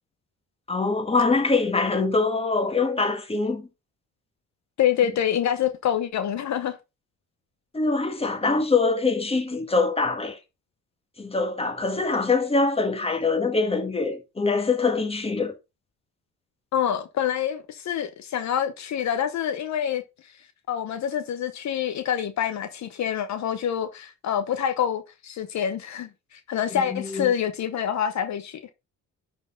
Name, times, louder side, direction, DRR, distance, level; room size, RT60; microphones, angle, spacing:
voice 1, 0.7-3.7 7.7-10.4 11.2-15.6 26.7-27.3, left 3 dB, 20° left, 1.7 m, -24 dB
voice 2, 4.8-6.8 16.7-20.0 20.7-28.7, left 9 dB, 65° left, 1.0 m, -26 dB
10.5 x 4.5 x 3.8 m
cardioid pair, 90°, 30 cm